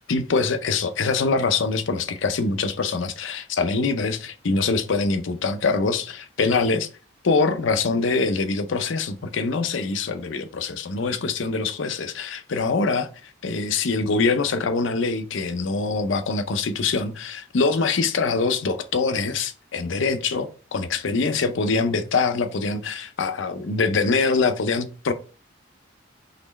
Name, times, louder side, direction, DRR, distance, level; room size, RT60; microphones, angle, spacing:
voice 1, 0.0-6.9 7.2-25.1, left 4 dB, 75° left, 0.6 m, -24 dB
4.1 x 3.0 x 4.0 m
head